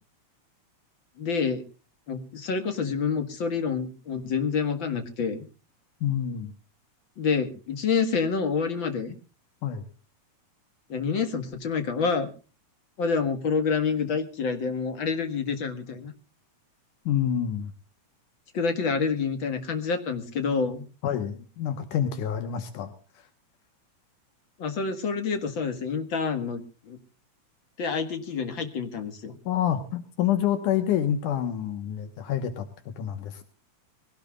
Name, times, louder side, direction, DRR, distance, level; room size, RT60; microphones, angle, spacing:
voice 1, 1.2-1.6 2.1-5.4 7.2-9.2 10.9-12.3 13.0-16.1 18.5-20.8 24.6-26.6 26.9-27.0 27.8-29.4, left 5 dB, 45° left, 7 dB, 2.1 m, -27 dB
voice 2, 6.0-6.5 9.6-9.8 17.1-17.7 21.0-22.9 29.5-32.7 33.0-33.4, left 10 dB, 80° left, 9 dB, 2.8 m, -27 dB
23.5 x 17.0 x 2.4 m, 0.34 s
omnidirectional pair, 3.5 m